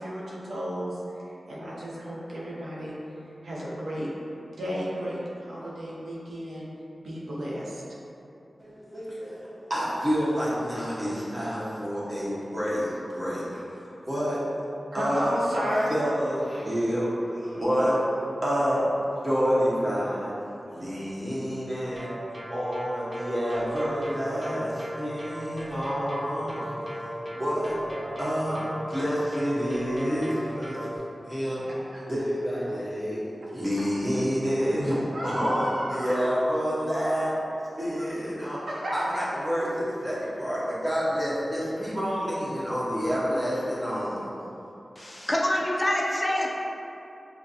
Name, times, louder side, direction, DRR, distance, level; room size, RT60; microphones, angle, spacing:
voice 1, 0.0-2.9 3.4-4.1 4.5-6.7 7.0-7.8 14.9-15.9 31.9-32.0 35.1-36.3 38.7-39.3, equal, 90° right, -7 dB, 0.8 m, -32 dB
voice 2, 8.6-14.4 14.9-15.3 15.9-18.0 18.4-18.8 19.2-20.4 20.7-22.2 22.5-27.7 28.1-28.6 28.9-30.9 31.3-31.6 32.1-33.2 33.5-37.3 37.7-38.6 38.9-44.3, equal, 20° right, -8 dB, 1.2 m, -28 dB
sound 1, 22.0-31.0, equal, 40° right, 0.5 m, -37 dB
voice 3, 45.0-46.5, left 1 dB, 25° left, -2 dB, 0.4 m, -26 dB
5.6 x 2.2 x 2.7 m, 2.8 s
cardioid pair, 55°, 0 cm